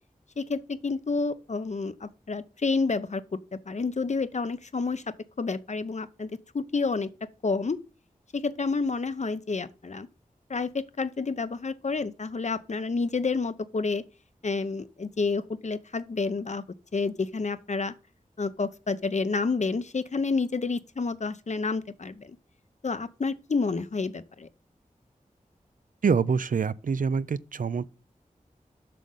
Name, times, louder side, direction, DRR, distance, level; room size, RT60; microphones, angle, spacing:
voice 1, 0.4-7.1 7.4-7.8 8.3-10.1 10.5-14.0 14.4-16.6 16.9-17.9 18.4-22.4 22.8-24.5, left 4 dB, 55° left, 0.7 m, -29 dB
voice 2, 26.0-27.8, right 5 dB, 70° right, 0.5 m, -25 dB
7.7 x 6.4 x 5.5 m
wide cardioid pair, 80°, 15 cm